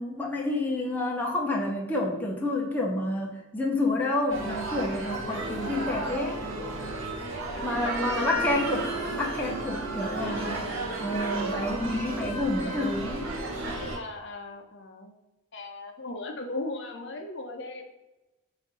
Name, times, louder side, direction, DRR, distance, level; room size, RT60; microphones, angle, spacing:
voice 1, 0.0-6.4 7.6-8.9 9.1-10.6 11.0-13.3, left 2 dB, 10° left, -2 dB, 0.5 m, -29 dB
sound 1, 4.3-14.0, right 2 dB, 60° right, 0.9 m, -33 dB
voice 2, 5.5-5.9 7.5-8.5 10.2-10.5 13.9-15.1 15.5-17.8, left 2 dB, 55° left, 3 dB, 0.6 m, -38 dB
5.0 x 2.6 x 4.0 m, 1.0 s
head